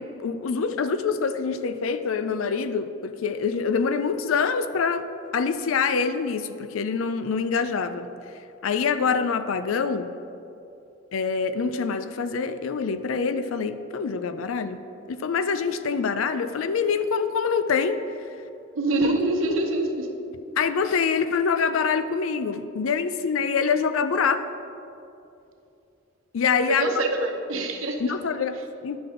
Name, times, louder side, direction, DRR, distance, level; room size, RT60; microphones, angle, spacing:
voice 1, 0.0-5.1 5.3-8.1 8.6-10.1 11.1-14.8 15.1-18.3 19.0-19.1 20.6-24.4 26.3-26.9 28.0-29.0, left 5 dB, 90° left, 11 dB, 0.4 m, -25 dB
voice 2, 18.7-20.2 26.7-28.0, right 2 dB, 85° right, 4 dB, 0.9 m, -25 dB
10.5 x 6.0 x 3.8 m, 2.7 s
head